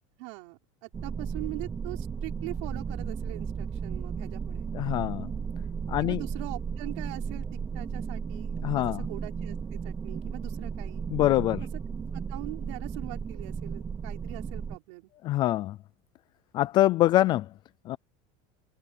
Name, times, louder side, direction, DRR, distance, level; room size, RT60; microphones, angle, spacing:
voice 1, 0.2-4.7 6.0-7.5 7.7-11.0 12.1-15.1, right 29 dB, 55° right, 5.8 m, -42 dB
sound 1, 0.9-14.8, right 6 dB, 15° right, 0.7 m, -35 dB
voice 2, 4.7-5.3 5.9-6.2 8.6-9.0 11.1-11.6 15.2-15.8 16.5-17.5 17.9-18.0, left 15 dB, 25° left, 0.3 m, -24 dB
cardioid pair, 175°, 17 cm